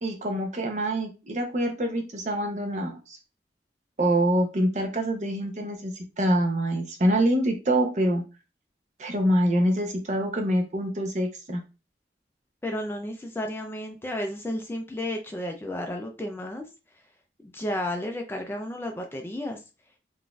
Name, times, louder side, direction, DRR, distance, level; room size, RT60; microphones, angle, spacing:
voice 1, 0.0-3.2 4.0-8.2 9.0-11.6, right 1 dB, 40° right, 4 dB, 0.6 m, -25 dB
voice 2, 12.6-16.7 17.4-19.6, left 1 dB, 15° left, 3 dB, 0.3 m, -32 dB
3.8 x 2.5 x 2.3 m, 0.30 s
head